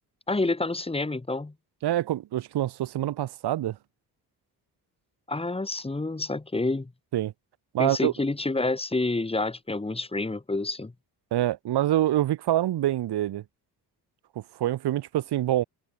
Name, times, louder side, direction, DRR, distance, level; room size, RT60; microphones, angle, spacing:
voice 1, 0.3-1.5 5.3-6.9 7.8-10.9, left 2 dB, 15° left, 7.4 m, -28 dB
voice 2, 1.8-3.8 7.1-7.3 7.7-8.1 11.3-13.4 14.6-15.6, right 13 dB, 85° right, 4.2 m, -25 dB
cardioid pair, 125°, 39 cm